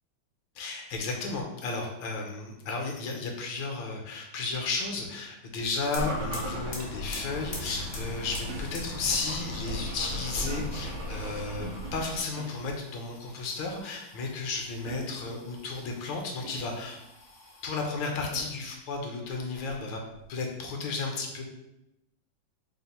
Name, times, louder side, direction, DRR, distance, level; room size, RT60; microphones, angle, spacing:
voice 1, 0.6-17.0 17.6-20.0 20.3-21.4, left 3 dB, 75° left, 1 dB, 1.3 m, -33 dB
sound 1, 5.9-17.8 18.2-19.0 19.3-20.3, left 2 dB, 60° left, 0.7 m, -48 dB
sound 2, 5.9-12.2, equal, 60° right, 1.1 m, -36 dB
sound 3, 8.5-9.0 10.5-11.0 12.4-12.9 14.9-15.4 16.4-16.9 18.3-18.7, right 5 dB, 80° right, 1.4 m, -45 dB
3.4 x 2.4 x 4.1 m, 0.89 s
omnidirectional pair, 2.2 m